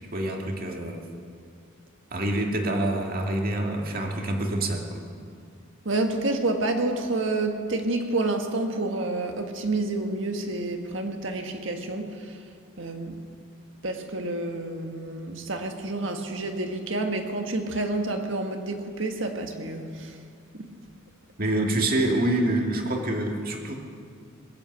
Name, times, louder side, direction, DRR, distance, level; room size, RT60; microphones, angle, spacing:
voice 1, 0.1-1.0 2.1-5.0 21.4-23.8, right 1 dB, 45° right, 1 dB, 2.1 m, -26 dB
voice 2, 5.8-12.4 12.8-13.2 13.8-20.2 20.5-20.7, right 2 dB, 60° right, 4 dB, 1.6 m, -29 dB
20.5 x 8.7 x 7.9 m, 2.5 s
head